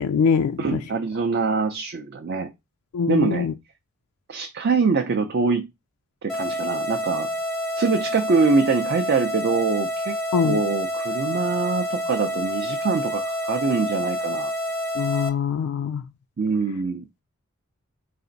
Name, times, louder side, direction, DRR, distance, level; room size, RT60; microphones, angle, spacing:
voice 1, 0.0-0.8 2.9-3.5 10.3-10.6 15.0-16.0, left 6 dB, 90° left, 0.3 m, -23 dB
voice 2, 0.6-2.5 3.1-3.5 4.3-5.7 6.2-7.3 7.8-14.5 16.4-17.1, right 4 dB, 50° right, 0.5 m, -24 dB
sound 1, 6.3-15.3, equal, ahead, 0.6 m, -28 dB
4.1 x 2.5 x 3.8 m
head